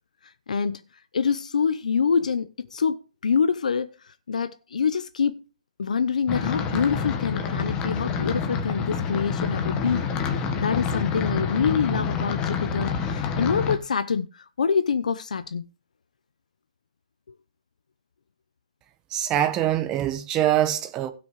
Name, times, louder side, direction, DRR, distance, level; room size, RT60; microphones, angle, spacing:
voice 1, 0.5-0.8 1.1-5.4 5.8-10.1 10.3-15.7, left 6 dB, 85° left, 0.8 m, -26 dB
sound 1, 6.3-13.8, left 6 dB, 20° left, 1.3 m, -27 dB
voice 2, 19.1-21.1, right 12 dB, 20° right, 1.2 m, -24 dB
16.5 x 6.1 x 4.8 m
hypercardioid pair, 160°, 4 cm